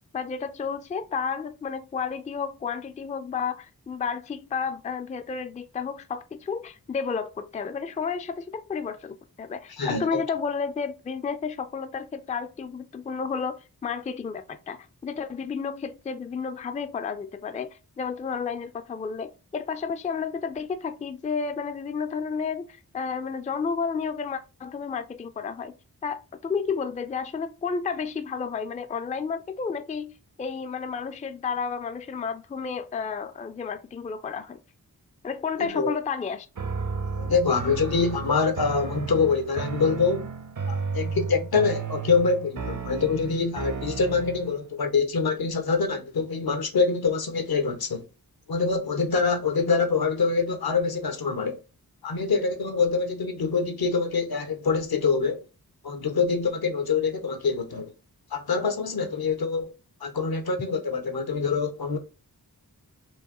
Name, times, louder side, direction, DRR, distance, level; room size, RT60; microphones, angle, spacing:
voice 1, 0.1-22.7 22.9-25.7 26.0-30.1 30.4-34.6 35.2-36.5, left 5 dB, 20° left, 0.3 m, -31 dB
voice 2, 9.8-10.2 35.6-35.9 37.1-40.3 40.7-48.0 48.5-51.6 52.0-55.4 55.8-57.9 58.3-59.7 60.0-62.0, left 4 dB, 75° left, 0.8 m, -25 dB
sound 1, 36.5-44.6, right 5 dB, 55° right, 0.6 m, -33 dB
4.7 x 2.6 x 2.9 m
wide cardioid pair, 75°, 37 cm